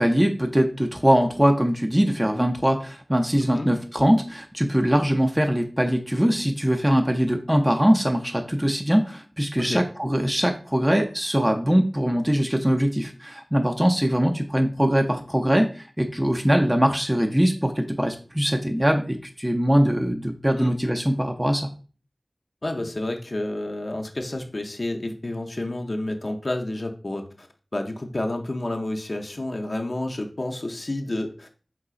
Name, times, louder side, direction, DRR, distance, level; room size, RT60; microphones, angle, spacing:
voice 1, 0.0-21.7, equal, 15° right, 3 dB, 0.5 m, -22 dB
voice 2, 22.6-27.5 27.7-31.5, left 1 dB, 60° left, 3 dB, 0.5 m, -30 dB
4.7 x 3.7 x 2.4 m, 0.38 s
wide cardioid pair, 45°, 0 cm